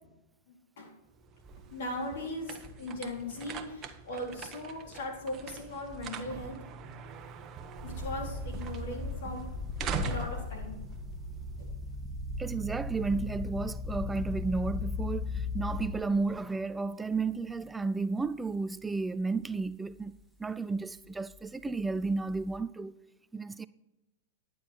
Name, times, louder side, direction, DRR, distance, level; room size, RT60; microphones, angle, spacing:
voice 1, 0.5-0.9 1.7-6.6 7.8-9.5 9.9-10.8 11.6-11.7, left 1 dB, 70° left, 3.8 m, -39 dB
sound 1, 1.1-11.8, right 4 dB, 35° right, 1.1 m, -42 dB
sound 2, 7.7-16.6 17.3-17.7 18.2-18.3 21.9-22.6, left 3 dB, 5° left, 2.3 m, -37 dB
voice 2, 12.4-20.1 20.4-23.0 23.3-23.7, right 3 dB, 10° right, 0.4 m, -32 dB
11.5 x 9.3 x 4.5 m
hypercardioid pair, 110°, 0 cm